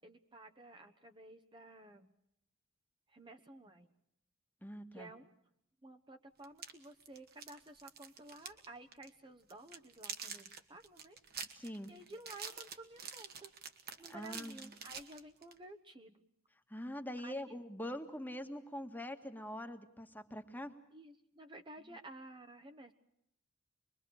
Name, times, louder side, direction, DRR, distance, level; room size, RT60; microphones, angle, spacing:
voice 1, 0.0-2.1 3.1-3.9 4.9-5.3 5.8-11.2 11.9-13.5 14.0-16.3 17.2-17.5 20.9-22.9, right 2 dB, 25° right, 6 dB, 1.3 m, -53 dB
voice 2, 4.6-5.1 11.5-11.9 14.1-14.7 16.7-20.7, equal, 10° left, 6 dB, 1.8 m, -44 dB
sound 1, 6.4-8.7 8.9-9.1 9.5-15.6, right 6 dB, 50° right, 2.1 m, -47 dB
25.5 x 22.5 x 6.5 m, 0.75 s
head